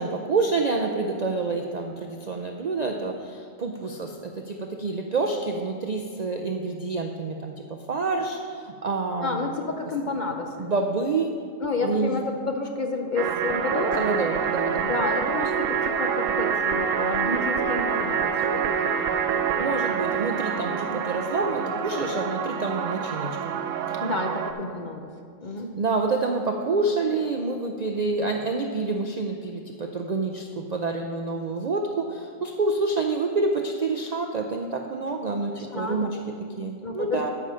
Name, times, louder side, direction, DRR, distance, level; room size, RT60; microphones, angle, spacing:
voice 1, 0.0-9.5 10.6-11.3 11.8-12.2 14.0-15.0 19.6-23.5 23.9-24.0 25.8-37.3, right 3 dB, 55° right, 3 dB, 0.4 m, -28 dB
voice 2, 9.2-10.7 11.6-14.1 14.8-19.6 20.7-21.0 24.0-25.1 25.4-25.7 35.7-36.1 36.8-37.3, left 3 dB, 50° left, 3 dB, 0.6 m, -30 dB
sound 1, 13.2-24.5, right 7 dB, 75° right, 1.0 m, -26 dB
13.0 x 5.6 x 4.9 m, 2.2 s
omnidirectional pair, 1.4 m